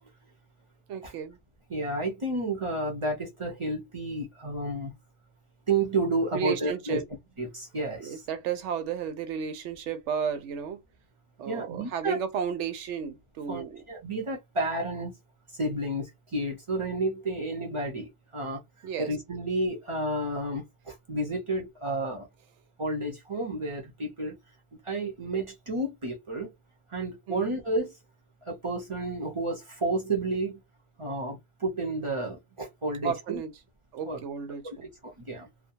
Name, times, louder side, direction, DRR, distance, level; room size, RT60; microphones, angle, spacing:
voice 1, 0.9-1.4 6.3-7.0 8.0-10.8 11.4-13.8 18.8-19.1 27.3-27.5 33.0-33.5 33.9-34.9, right 7 dB, 85° right, 0.9 m, -33 dB
voice 2, 1.7-4.9 5.7-7.0 7.4-8.2 11.4-12.2 13.5-15.1 15.6-18.6 19.0-22.3 22.8-24.4 24.7-26.5 26.9-27.9 28.5-30.6 31.0-33.4 34.0-34.2 35.0-35.5, right 2 dB, 35° right, 0.6 m, -31 dB
2.3 x 2.2 x 2.7 m
omnidirectional pair, 1.2 m